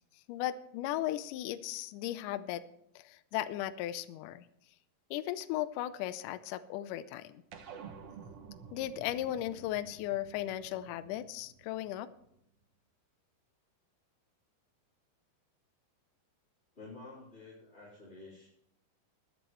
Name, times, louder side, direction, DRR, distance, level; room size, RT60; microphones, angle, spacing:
voice 1, 0.3-2.6 3.0-4.4 5.1-7.4 8.7-12.1, left 13 dB, 80° left, 11 dB, 1.9 m, -36 dB
sound 1, 7.5-12.2, right 6 dB, 80° right, 1.3 m, -51 dB
voice 2, 16.8-18.5, left 3 dB, 15° left, -10 dB, 3.8 m, -50 dB
21.0 x 9.9 x 3.2 m, 0.76 s
omnidirectional pair, 4.4 m